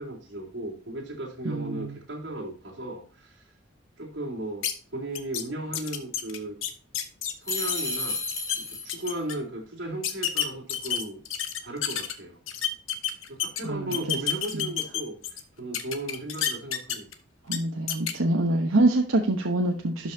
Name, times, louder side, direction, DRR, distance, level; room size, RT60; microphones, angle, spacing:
voice 1, 0.0-3.4 4.0-4.7 4.9-6.6 7.4-8.2 8.5-11.2 11.6-12.4 13.3-15.2 15.6-17.1, right 1 dB, 60° right, -2 dB, 3.8 m, -36 dB
voice 2, 1.4-2.0 13.6-14.0 14.5-14.7 17.5-20.1, right 2 dB, 85° right, 2 dB, 1.1 m, -25 dB
sound 1, 4.6-4.7 5.1-5.4 5.7-7.8 8.1-8.6 8.9-9.3 10.0-12.1 12.5-13.6 13.9-15.4 15.7-17.1 17.5-17.6 17.9-18.1, left 10 dB, 85° left, 1.2 m, -29 dB
sound 2, 7.4-9.2, left 3 dB, 15° left, 2.6 m, -32 dB
12.0 x 5.6 x 2.8 m, 0.40 s
head